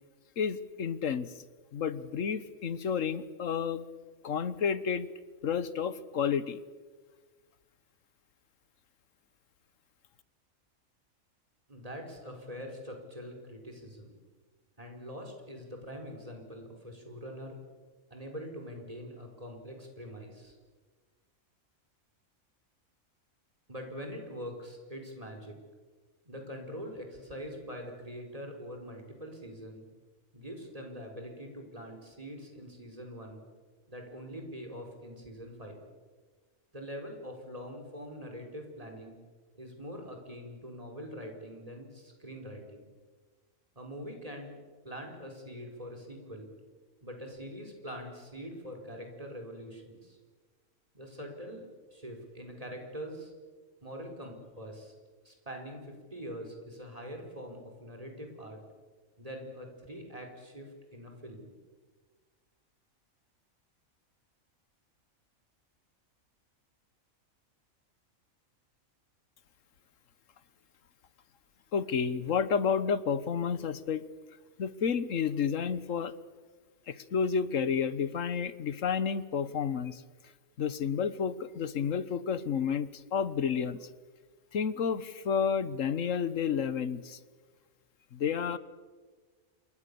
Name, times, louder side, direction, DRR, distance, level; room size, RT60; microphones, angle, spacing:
voice 1, 0.4-1.3 1.7-3.8 4.2-5.1 5.4-6.6 71.7-74.0 74.6-76.1 76.9-80.0 80.6-83.8 84.5-87.2 88.1-88.6, left 6 dB, 70° left, 15 dB, 1.4 m, -30 dB
voice 2, 11.7-14.1 14.8-17.6 18.1-20.6 23.7-25.6 26.2-29.8 30.3-33.4 33.9-35.8 36.7-39.2 39.5-42.9 43.7-44.6 44.8-46.5 47.0-50.2 50.9-51.6 51.9-53.3 53.8-54.9 55.2-58.6 59.2-61.5, equal, 25° right, 2 dB, 4.9 m, -44 dB
27.5 x 23.0 x 7.0 m, 1.4 s
omnidirectional pair, 1.4 m